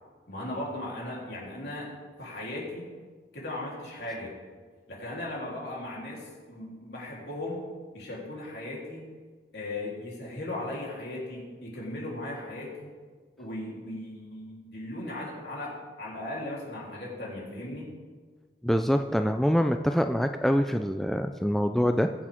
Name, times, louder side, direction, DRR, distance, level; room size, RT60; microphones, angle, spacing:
voice 1, 0.3-1.9 2.2-2.9 3.3-4.4 4.9-7.7 7.9-9.1 9.5-12.9 13.4-17.9, left 1 dB, 70° left, -4 dB, 3.6 m, -37 dB
voice 2, 18.6-22.1, equal, ahead, 6 dB, 0.3 m, -25 dB
21.5 x 7.4 x 3.6 m, 1.5 s
head